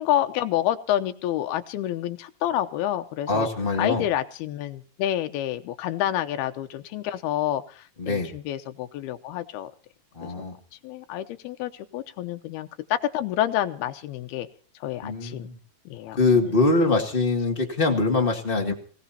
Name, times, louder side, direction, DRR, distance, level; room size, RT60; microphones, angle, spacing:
voice 1, 0.0-3.5 3.8-9.7 10.2-10.5 10.8-14.5 14.8-15.5 15.9-16.2 18.7-18.8, left 12 dB, 85° left, 7 dB, 2.8 m, -28 dB
voice 2, 3.3-4.0 8.0-8.3 10.1-10.5 15.0-15.5 16.2-18.7, left 3 dB, 20° left, 2 dB, 1.6 m, -23 dB
25.5 x 16.5 x 2.9 m, 0.43 s
omnidirectional pair, 4.4 m